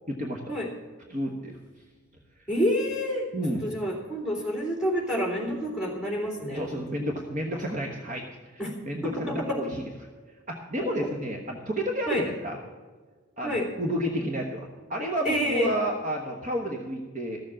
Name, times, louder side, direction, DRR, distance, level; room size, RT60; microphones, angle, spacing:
voice 1, 0.1-0.4 1.1-1.6 3.3-3.7 6.5-9.7 10.5-12.6 13.4-17.4, equal, 35° right, 1 dB, 1.2 m, -31 dB
voice 2, 2.5-3.3 3.6-6.6 8.6-8.7 9.3-9.6 10.8-10.9 12.1-12.2 13.4-13.7 15.2-15.7, equal, 5° right, 0 dB, 3.0 m, -28 dB
14.0 x 7.3 x 7.5 m, 1.4 s
head